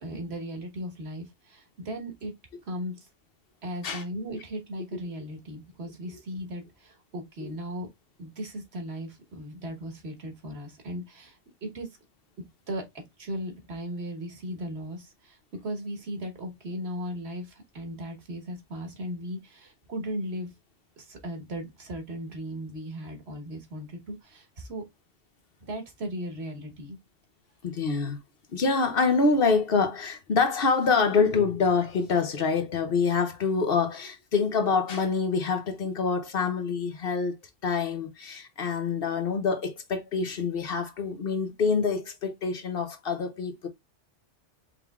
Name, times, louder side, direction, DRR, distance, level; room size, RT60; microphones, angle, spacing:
voice 1, 0.0-2.3 2.6-3.1 3.6-7.9 8.2-12.0 12.7-20.5 21.0-24.8 25.6-27.0, equal, 65° right, 1.5 m, -37 dB
voice 2, 27.6-28.2 28.5-37.4 37.6-43.7, left 4 dB, 60° left, 0.9 m, -26 dB
4.8 x 3.5 x 2.3 m
omnidirectional pair, 1.2 m